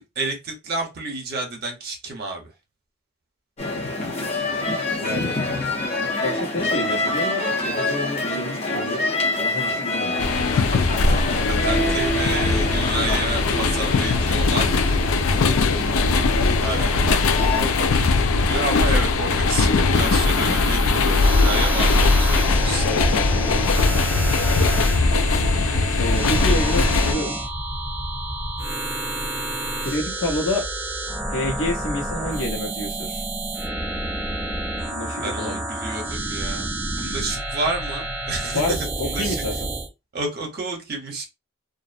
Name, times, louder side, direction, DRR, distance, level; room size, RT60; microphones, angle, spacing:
voice 1, 0.0-2.5 11.4-14.8 16.6-17.0 17.4-22.8 35.2-38.8 39.0-39.4 40.1-41.2, right 3 dB, 50° right, 0.8 m, -30 dB
sound 1, 3.6-17.6, left 2 dB, 30° left, 0.6 m, -26 dB
voice 2, 4.9-5.4 6.0-9.1 9.4-10.2 11.3-12.0 15.4-15.8 16.2-16.6 22.8-24.1 26.0-27.4 29.8-30.7 31.3-33.3 34.8-35.6 38.4-39.7, left 1 dB, 75° left, 1.0 m, -29 dB
sound 2, 10.2-27.1, left 3 dB, 90° left, 0.4 m, -20 dB
sound 3, 19.9-39.9, right 1 dB, 15° right, 0.4 m, -29 dB
2.5 x 2.0 x 2.5 m
head